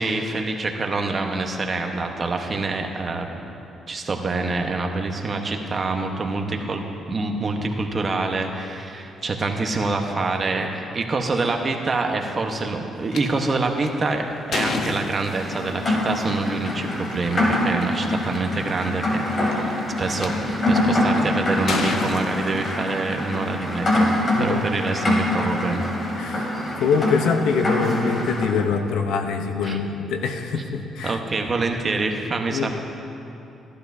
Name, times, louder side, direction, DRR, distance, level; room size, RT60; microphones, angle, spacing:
voice 1, 0.0-3.4 3.9-25.9 29.6-29.8 30.5-30.6 31.0-32.8, right 3 dB, 35° right, 3 dB, 1.1 m, -26 dB
sound 1, 13.1-13.2 13.8-15.7 17.0-17.1 17.8-17.9 18.1-18.5 19.3-20.3 20.9-21.2 21.7-23.1, left 4 dB, 65° left, 0.9 m, -29 dB
Rain, 15.2-28.5, left 1 dB, 40° left, 3.0 m, -25 dB
voice 2, 24.3-24.7 26.2-26.5 26.8-31.2 32.5-32.8, left 5 dB, 90° left, 6 dB, 0.8 m, -24 dB
15.0 x 11.5 x 2.7 m, 2.8 s
cardioid pair, 90°, 0 cm